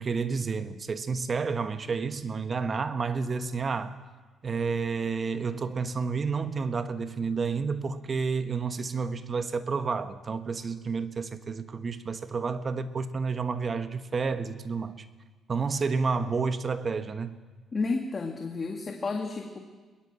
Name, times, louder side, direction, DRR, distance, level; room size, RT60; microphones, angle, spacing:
voice 1, 0.0-4.0 4.4-15.1 15.5-17.4, right 5 dB, 35° right, 1.3 m, -30 dB
voice 2, 17.7-19.6, left 3 dB, 30° left, 2.0 m, -31 dB
22.0 x 19.0 x 7.6 m
cardioid pair, 95°, 0 cm